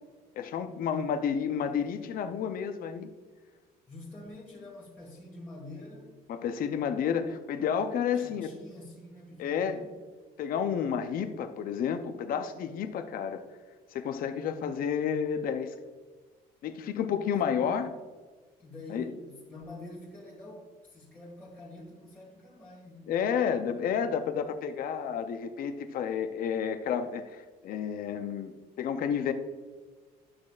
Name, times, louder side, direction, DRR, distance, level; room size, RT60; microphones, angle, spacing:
voice 1, 0.4-3.1 6.3-8.5 9.4-9.8 10.4-13.4 13.9-15.7 16.6-17.9 18.9-19.1 23.1-28.5 28.8-29.3, left 7 dB, 60° left, 8 dB, 0.6 m, -30 dB
voice 2, 3.9-6.1 8.1-9.9 17.4-17.8 18.6-23.1, left 1 dB, 10° left, -6 dB, 1.7 m, -46 dB
10.0 x 6.3 x 2.4 m, 1.4 s
cardioid pair, 110°, 17 cm